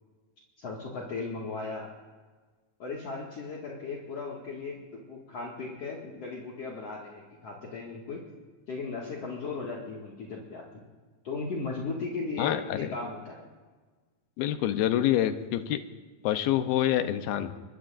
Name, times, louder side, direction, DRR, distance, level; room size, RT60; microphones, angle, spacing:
voice 1, 0.6-1.9 2.8-8.2 8.7-10.6 11.2-13.4, left 4 dB, 50° left, -3 dB, 2.7 m, -36 dB
voice 2, 12.4-12.9 14.4-15.8 16.2-17.5, left 12 dB, 80° left, 9 dB, 2.6 m, -26 dB
24.5 x 22.5 x 2.6 m, 1.4 s
omnidirectional pair, 4.3 m